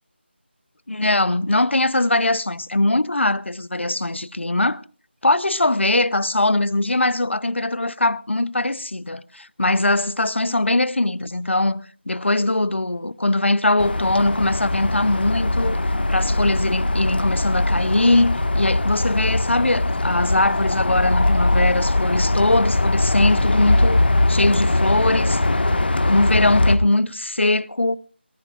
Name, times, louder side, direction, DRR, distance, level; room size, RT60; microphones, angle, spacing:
voice 1, 0.9-4.8 5.2-15.8 16.1-24.0 24.3-25.4 26.0-28.0, left 2 dB, 80° left, 0.9 m, -21 dB
sound 1, 13.8-26.8, left 2 dB, 60° left, 1.6 m, -21 dB
22.0 x 19.5 x 2.5 m
figure-of-eight pair, 170°, 6 cm